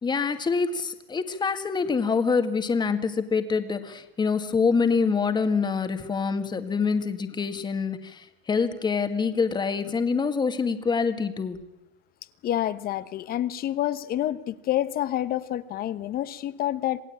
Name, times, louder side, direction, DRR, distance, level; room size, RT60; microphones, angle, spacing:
voice 1, 0.0-11.6, left 5 dB, 15° left, 8 dB, 2.0 m, -25 dB
voice 2, 12.4-17.0, left 12 dB, 30° left, 15 dB, 1.2 m, -28 dB
27.5 x 17.5 x 8.8 m, 0.89 s
supercardioid pair, 135°, 30 cm